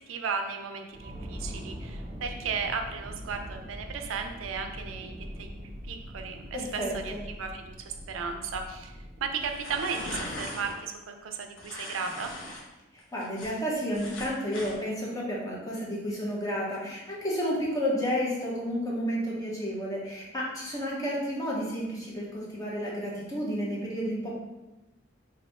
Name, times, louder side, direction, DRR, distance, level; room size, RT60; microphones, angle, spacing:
voice 1, 0.1-5.1 5.4-5.5 5.9-8.9 9.2-12.3, right 5 dB, 80° right, 5 dB, 0.4 m, -35 dB
sound 1, 0.9-10.5, equal, 15° right, 0.5 m, -42 dB
voice 2, 6.5-7.2 13.1-24.3, equal, 15° left, -5 dB, 0.9 m, -31 dB
sound 2, 9.4-10.8 11.6-12.6 13.0-14.8, left 1 dB, 70° left, 0.7 m, -39 dB
3.1 x 2.6 x 4.1 m, 1.0 s
head